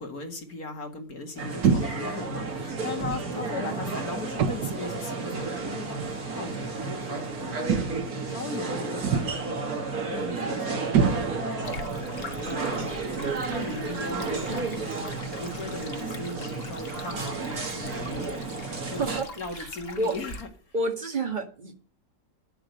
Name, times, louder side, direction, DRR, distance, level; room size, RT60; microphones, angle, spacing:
voice 1, 0.0-7.9 8.3-9.7 10.1-19.0 19.4-20.3, left 3 dB, 55° left, 2.4 m, -38 dB
sound 1, 1.4-19.2, right 4 dB, 55° right, 2.4 m, -32 dB
sound 2, 1.6-2.1 3.0-3.3 4.4-4.9 6.0-6.2 7.7-8.2 9.0-9.5 10.9-11.6, right 6 dB, 75° right, 1.6 m, -25 dB
voice 2, 3.3-4.2 12.5-13.0 14.5-15.2 15.5-15.6 18.9-20.1 20.7-21.7, right 2 dB, 25° right, 1.8 m, -33 dB
Stream, 11.6-20.4, left 3 dB, 35° left, 1.7 m, -43 dB
10.0 x 7.8 x 6.6 m
omnidirectional pair, 1.9 m